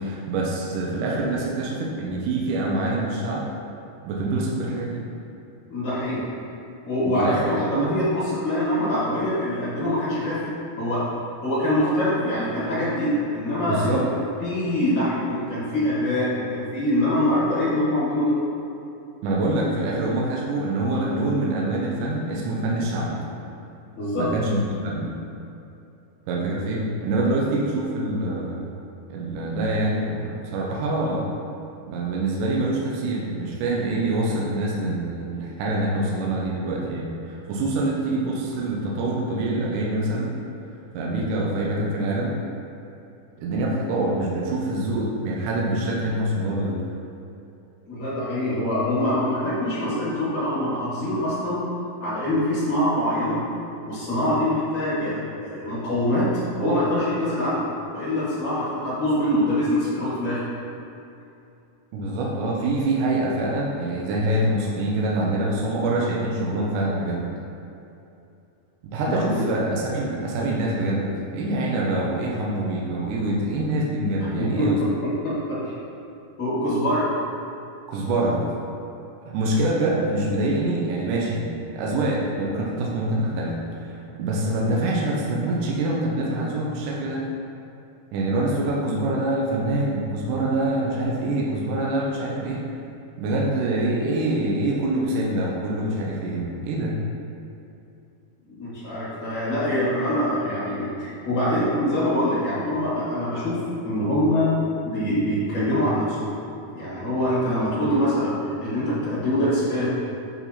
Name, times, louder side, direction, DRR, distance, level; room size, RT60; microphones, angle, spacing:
voice 1, 0.0-3.5 4.0-5.0 7.0-8.0 13.7-14.0 19.2-23.2 24.2-25.1 26.3-28.7 29.1-31.3 31.9-40.3 40.9-42.3 43.4-46.8 61.9-67.3 68.9-74.8 77.9-78.4 79.3-81.4 81.7-87.2 88.1-92.6 93.2-96.9, right 2 dB, 80° right, -3 dB, 2.2 m, -25 dB
voice 2, 5.7-6.2 6.8-10.5 10.8-11.0 11.4-14.0 14.4-18.3 24.0-24.3 47.9-51.6 52.0-53.4 53.9-60.4 69.0-69.4 74.6-74.7 75.2-75.6 76.4-77.1 98.5-104.5 104.8-106.3 106.7-109.9, left 1 dB, 45° left, -9 dB, 1.9 m, -24 dB
7.0 x 4.2 x 4.2 m, 2.7 s
omnidirectional pair, 3.8 m